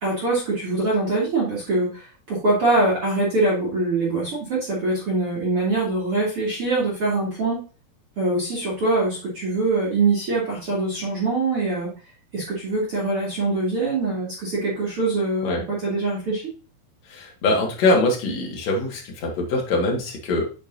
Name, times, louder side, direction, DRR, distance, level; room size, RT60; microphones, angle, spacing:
voice 1, 0.0-7.6 8.2-11.9 12.3-16.4, right 2 dB, 40° right, -6 dB, 2.6 m, -23 dB
voice 2, 17.1-20.5, left 2 dB, 50° left, 0 dB, 2.4 m, -23 dB
9.3 x 5.3 x 2.6 m, 0.34 s
omnidirectional pair, 4.7 m